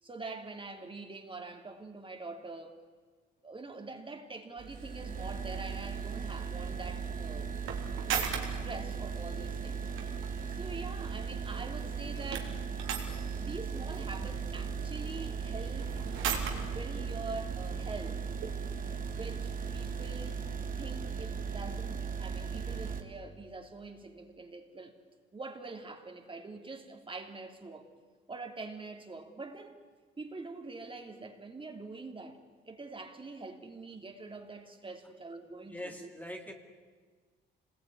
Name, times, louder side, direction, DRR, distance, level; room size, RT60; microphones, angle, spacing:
voice 1, 0.0-2.8 3.4-7.5 8.0-8.2 8.5-9.8 10.5-12.6 13.3-18.2 19.1-20.4 20.8-24.9 25.3-27.9 28.3-29.8 30.2-32.4 32.7-36.1, right 3 dB, 25° right, 3.3 m, -44 dB
sound 1, 4.6-23.0, right 6 dB, 45° right, 2.6 m, -37 dB
sound 2, 4.7-20.2, right 7 dB, 90° right, 3.6 m, -42 dB
voice 2, 35.7-36.5, left 1 dB, 10° left, 2.5 m, -42 dB
26.5 x 20.5 x 9.8 m
cardioid pair, 90°, 20 cm